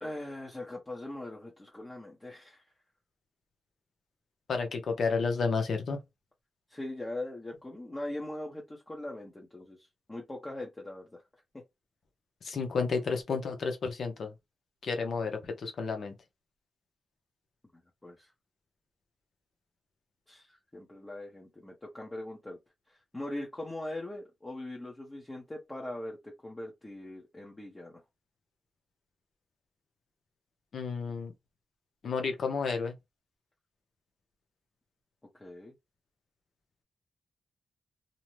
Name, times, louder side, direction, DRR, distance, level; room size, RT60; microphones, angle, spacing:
voice 1, 0.0-2.6 6.7-11.2 18.0-18.3 20.3-22.6 22.9-28.0 35.3-35.7, left 1 dB, 20° left, 0.8 m, -41 dB
voice 2, 4.5-6.0 12.4-14.3 14.8-16.1 30.7-31.3 32.0-32.9, left 5 dB, 70° left, 0.7 m, -31 dB
2.6 x 2.1 x 3.1 m
cardioid pair, 80°, 0 cm